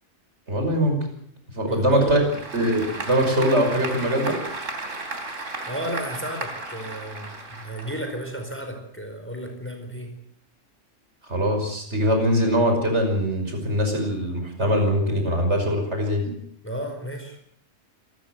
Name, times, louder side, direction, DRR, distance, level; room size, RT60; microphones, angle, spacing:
voice 1, 0.5-1.0 1.5-2.3 2.5-4.4 11.3-16.3, equal, 65° right, 4 dB, 6.0 m, -22 dB
voice 2, 1.6-2.2 5.7-10.1 16.6-17.5, equal, 10° left, 4 dB, 4.8 m, -33 dB
Applause / Crowd, 1.9-8.4, right 2 dB, 80° right, 3.5 m, -35 dB
27.0 x 14.0 x 7.9 m, 0.65 s
omnidirectional pair, 1.3 m